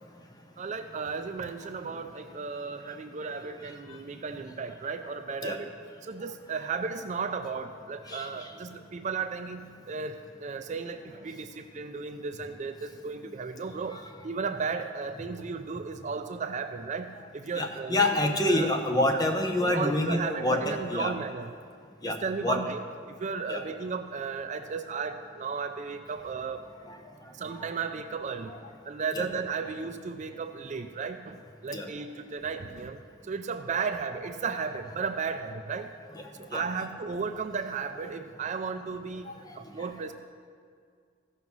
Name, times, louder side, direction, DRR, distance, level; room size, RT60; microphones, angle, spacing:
voice 1, 0.6-5.7 6.0-14.0 14.2-18.1 18.5-18.7 19.1-19.2 19.6-21.5 22.0-22.8 23.1-26.6 27.3-28.5 28.8-35.9 36.4-40.1, right 5 dB, 40° right, 8 dB, 0.4 m, -34 dB
voice 2, 8.1-8.5 13.9-14.0 17.5-21.1 22.0-22.6 23.5-23.6 26.9-27.0 27.5-27.6 29.1-29.3 31.7-31.9 36.2-36.3 36.5-36.6 39.8-39.9, left 1 dB, 20° left, 3 dB, 0.9 m, -27 dB
14.5 x 5.6 x 6.1 m, 2.2 s
head